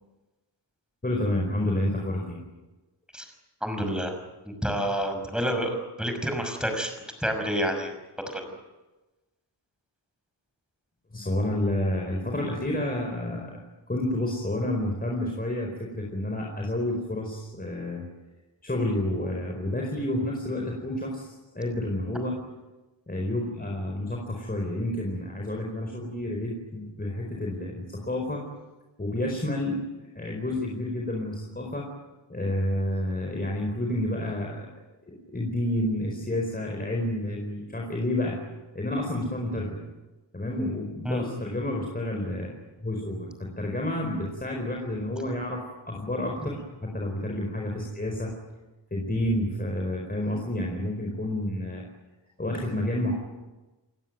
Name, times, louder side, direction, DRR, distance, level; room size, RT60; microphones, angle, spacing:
voice 1, 1.0-2.4 4.5-4.7 11.1-13.6 13.9-18.0 18.6-22.3 23.1-28.4 29.0-29.8 30.1-31.9 32.3-34.7 35.1-38.4 38.7-39.8 40.3-42.5 42.8-48.3 48.9-51.8 52.4-53.1, left 1 dB, 20° left, 0 dB, 4.7 m, -30 dB
voice 2, 3.6-4.1 4.4-6.9 7.2-7.9 8.3-8.5 41.0-41.2, equal, ahead, 4 dB, 5.9 m, -28 dB
30.0 x 17.5 x 9.3 m, 1.1 s
wide cardioid pair, 145°, 44 cm